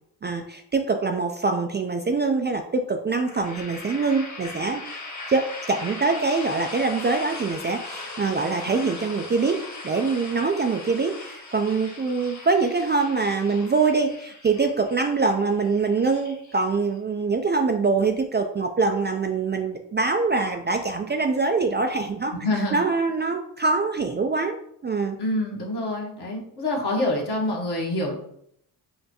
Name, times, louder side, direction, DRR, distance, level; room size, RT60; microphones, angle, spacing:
voice 1, 0.2-4.8 5.3-9.6 9.8-22.3 22.7-24.6 24.8-25.2, right 4 dB, 25° right, 4 dB, 0.4 m, -24 dB
sound 1, 3.2-17.0, left 3 dB, 35° left, 1.3 m, -39 dB
voice 2, 22.3-22.8 25.2-28.1, left 1 dB, 55° left, -2 dB, 1.4 m, -26 dB
5.4 x 2.1 x 2.9 m, 0.72 s
hypercardioid pair, 40°, 47 cm